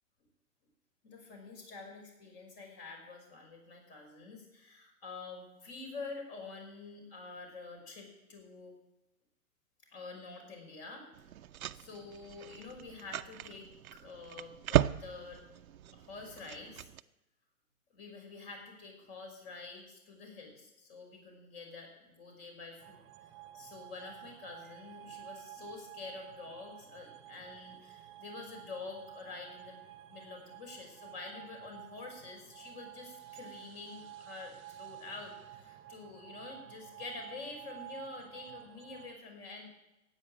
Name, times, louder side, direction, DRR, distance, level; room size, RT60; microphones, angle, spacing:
voice 1, 1.0-8.7 9.9-11.1 11.7-15.4 15.9-16.9 17.9-23.3 23.5-29.8 30.1-39.7, left 3 dB, 40° left, 2 dB, 5.5 m, -47 dB
sound 1, 11.1-17.0, right 12 dB, 75° right, 0.7 m, -36 dB
sound 2, 22.8-39.1, right 13 dB, 25° right, 1.1 m, -51 dB
14.5 x 8.9 x 8.8 m, 0.95 s
hypercardioid pair, 130°, 43 cm